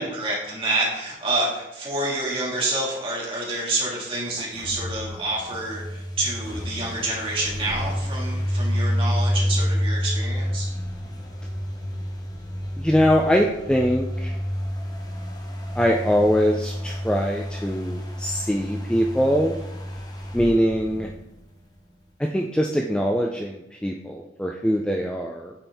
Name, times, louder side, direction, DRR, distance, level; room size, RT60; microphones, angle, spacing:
voice 1, 0.0-10.7, right 2 dB, 30° right, -4 dB, 1.8 m, -28 dB
sound 1, 4.3-21.8, equal, 20° left, 0.8 m, -29 dB
voice 2, 12.8-14.3 15.8-19.6 20.3-21.1 22.2-25.5, equal, 5° left, 0 dB, 0.3 m, -22 dB
8.7 x 4.3 x 3.5 m, 0.92 s
head